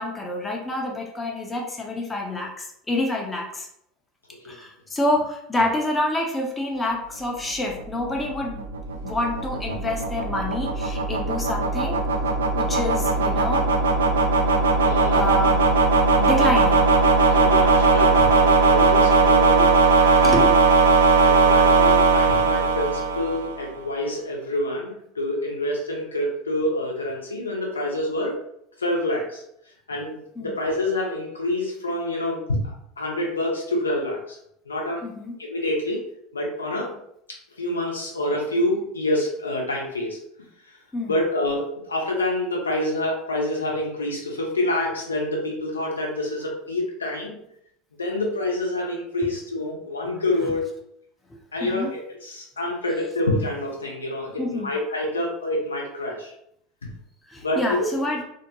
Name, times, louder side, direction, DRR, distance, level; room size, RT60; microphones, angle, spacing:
voice 1, 0.0-3.7 4.4-8.7 9.0-12.0 12.6-13.6 15.1-15.6 16.2-16.8 20.2-20.6 30.4-30.5 35.0-35.3 40.9-41.1 51.6-51.9 54.4-54.7 57.3-58.2, left 1 dB, 15° left, 0 dB, 0.6 m, -27 dB
sound 1, 7.5-23.6, right 3 dB, 75° right, 0.4 m, -19 dB
voice 2, 14.8-15.4 17.3-19.7 20.0-20.3 21.2-28.4 28.8-29.4 29.9-34.4 34.7-35.0 35.4-36.1 36.3-37.0 37.3-40.2 41.1-47.4 48.0-50.7 51.5-56.3 56.8-56.9 57.4-57.9, left 1 dB, 85° left, 0 dB, 0.6 m, -27 dB
2.6 x 2.1 x 2.8 m, 0.73 s
figure-of-eight pair, 75°, 0 cm